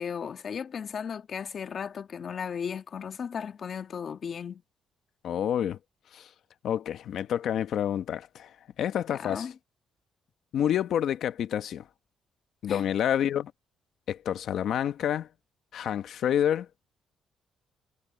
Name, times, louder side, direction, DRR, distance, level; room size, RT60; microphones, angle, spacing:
voice 1, 0.0-4.6 9.1-9.5 12.7-12.9, left 7 dB, 50° left, 1.5 m, -35 dB
voice 2, 5.2-5.8 6.1-6.3 6.6-9.5 10.5-11.9 12.6-13.5 14.1-15.3 15.7-16.7, left 10 dB, 70° left, 1.2 m, -28 dB
cardioid pair, 90°, 0 cm